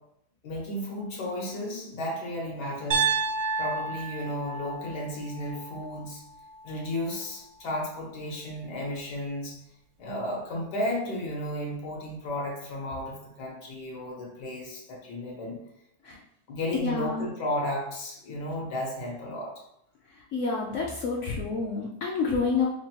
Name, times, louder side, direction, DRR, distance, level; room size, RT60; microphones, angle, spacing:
voice 1, 0.4-3.1 3.6-6.2 6.6-9.6 10.0-15.6 16.1-16.2 16.5-19.5, left 1 dB, 85° left, -3 dB, 1.7 m, -33 dB
Piano, 2.9-7.0, right 5 dB, 65° right, 0.7 m, -31 dB
voice 2, 16.8-17.3 20.3-22.7, left 4 dB, 70° left, -2 dB, 0.7 m, -28 dB
5.7 x 2.2 x 2.8 m, 0.77 s
omnidirectional pair, 1.7 m